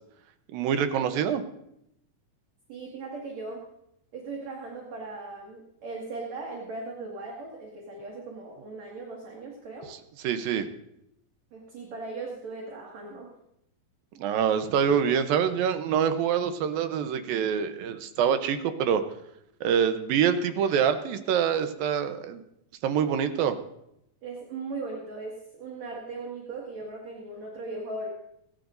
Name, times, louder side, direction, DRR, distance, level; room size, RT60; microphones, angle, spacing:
voice 1, 0.5-1.4 9.9-10.0 10.2-10.7 14.1-19.0 19.6-22.4 22.8-23.6, right 8 dB, 85° right, 9 dB, 2.7 m, -25 dB
voice 2, 2.7-3.6 4.1-9.9 11.5-13.3 24.2-28.1, right 3 dB, 55° right, -2 dB, 3.1 m, -38 dB
23.5 x 12.0 x 2.6 m, 0.79 s
omnidirectional pair, 4.0 m